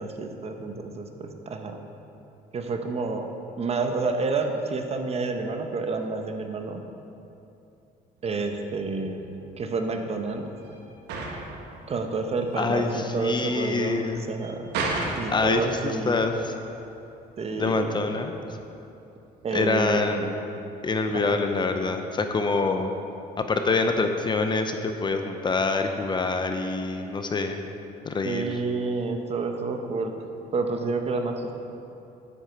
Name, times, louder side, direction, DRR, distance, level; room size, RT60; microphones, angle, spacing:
voice 1, 0.0-1.8 2.5-3.3 3.6-6.8 8.2-9.2 9.6-10.5 11.9-14.7 15.2-16.2 17.4-17.9 19.4-20.4 21.1-21.4 28.2-30.1 30.5-31.6, right 3 dB, 40° right, 5 dB, 0.9 m, -29 dB
sound 1, 8.2-20.1, right 3 dB, 85° right, 1.4 m, -37 dB
voice 2, 12.6-14.2 15.3-16.5 17.6-18.4 19.5-20.3 20.8-22.9 23.4-27.6 28.0-28.4, left 3 dB, 25° left, 6 dB, 0.6 m, -25 dB
9.7 x 7.8 x 4.5 m, 2.8 s
cardioid pair, 110°, 17 cm